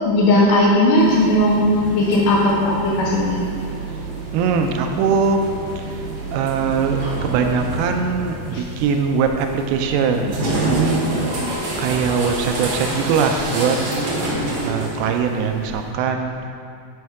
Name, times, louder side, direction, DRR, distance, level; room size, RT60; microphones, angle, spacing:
voice 1, 0.0-3.3 8.5-8.6 11.8-11.9, left 1 dB, 80° left, -4 dB, 1.6 m, -17 dB
sound 1, 1.0-15.9, right 2 dB, 70° right, 1.3 m, -28 dB
voice 2, 4.3-5.4 6.3-11.1 11.8-13.8 14.6-16.3, right 5 dB, 90° right, 5 dB, 2.4 m, -21 dB
6.4 x 4.2 x 4.7 m, 2.4 s
omnidirectional pair, 4.3 m